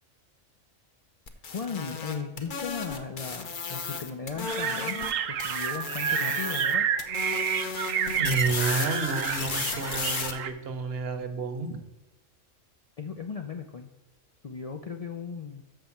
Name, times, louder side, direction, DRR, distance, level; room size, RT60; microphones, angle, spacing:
sound 1, 1.3-5.1 5.4-6.7 7.0-10.3, left 5 dB, 50° left, 0.8 m, -34 dB
voice 1, 1.5-6.9 13.0-13.9 14.4-15.6, left 6 dB, 70° left, 4 dB, 0.3 m, -37 dB
sound 2, 4.5-10.5, right 8 dB, 85° right, 1.0 m, -29 dB
voice 2, 8.2-11.8, right 3 dB, 55° right, 7 dB, 1.0 m, -30 dB
6.4 x 5.7 x 7.0 m, 1.0 s
omnidirectional pair, 1.3 m